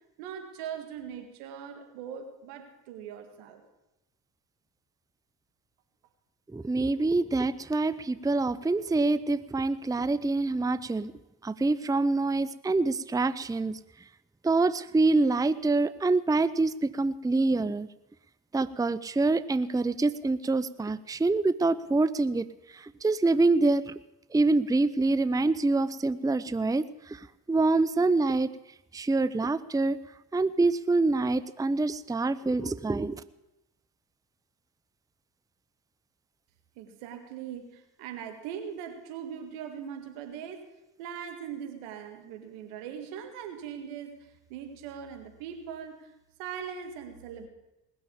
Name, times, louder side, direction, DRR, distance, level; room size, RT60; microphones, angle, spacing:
voice 1, 0.2-3.6 36.8-46.1 46.4-47.5, right 8 dB, 85° right, 6 dB, 2.0 m, -40 dB
voice 2, 6.5-11.1 11.4-13.8 14.4-17.9 18.5-22.5 23.0-23.8 24.3-26.8 27.5-28.5 28.9-30.0 30.3-33.2, right 3 dB, 10° right, 16 dB, 0.6 m, -25 dB
19.5 x 7.2 x 8.7 m, 0.94 s
hypercardioid pair, 45°, 46 cm